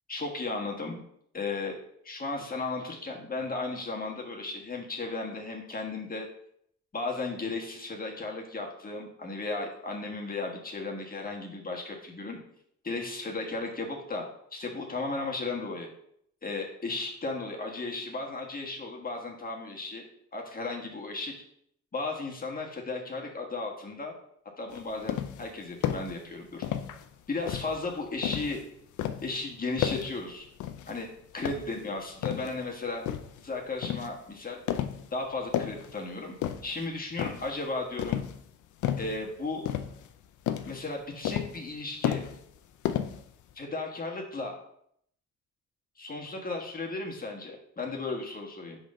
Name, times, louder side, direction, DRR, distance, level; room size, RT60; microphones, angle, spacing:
voice 1, 0.1-1.0 1.3-1.8 2.0-6.3 6.9-12.4 12.8-14.2 14.5-15.9 16.4-20.0 20.3-21.3 21.9-24.1 24.6-26.7 27.3-28.6 29.2-30.5 30.9-31.1 31.3-33.0 33.4-34.6 35.1-36.4 36.6-38.2 39.0-39.6 40.7-42.2 43.5-44.5 46.0-48.8, left 3 dB, 30° left, 0 dB, 1.3 m, -35 dB
sound 1, 24.7-25.5 25.8-26.1 26.6-27.1 27.5-28.6 29.0-29.3 29.8-30.2 30.6-31.0 31.4-32.6 33.1-33.4 33.8-34.2 34.7-35.1 35.4-35.9 36.4-36.8 37.2-37.6 38.0-38.4 38.8-39.2 39.7-40.2 40.5-40.8 41.2-41.7 42.0-42.6 42.8-43.5, left 10 dB, 75° left, 0.6 m, -32 dB
5.1 x 3.8 x 5.2 m, 0.70 s
cardioid pair, 90°, 30 cm